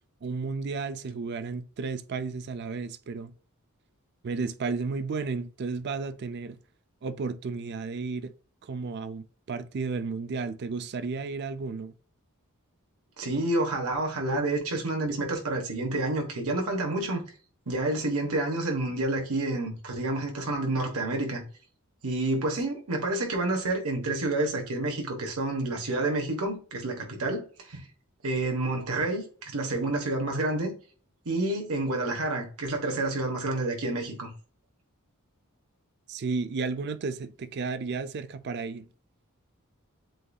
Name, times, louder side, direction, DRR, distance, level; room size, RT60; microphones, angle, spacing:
voice 1, 0.2-3.3 4.2-6.6 7.0-8.3 8.6-11.9 36.1-38.9, right 4 dB, 50° right, 0.4 m, -33 dB
voice 2, 13.2-17.2 17.7-21.4 22.0-27.9 28.2-30.7 31.2-34.3, right 2 dB, 75° right, 1.2 m, -29 dB
7.7 x 2.7 x 2.3 m
head